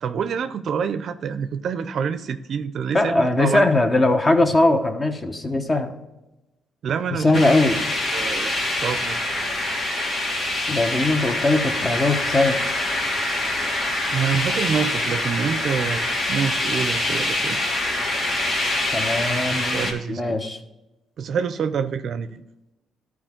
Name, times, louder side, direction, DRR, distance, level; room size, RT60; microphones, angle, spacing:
voice 1, 0.0-3.7 6.8-7.4 8.1-8.5 8.8-9.4 14.1-17.6 19.5-20.4 21.2-22.4, right 7 dB, 60° right, 11 dB, 0.5 m, -27 dB
voice 2, 2.9-6.0 7.1-7.8 10.7-12.6 18.9-20.6, left 2 dB, 30° left, 7 dB, 1.0 m, -20 dB
sound 1, 7.3-19.9, left 1 dB, 50° left, 2.1 m, -25 dB
12.5 x 4.7 x 3.7 m, 0.99 s
cardioid pair, 90°, 0 cm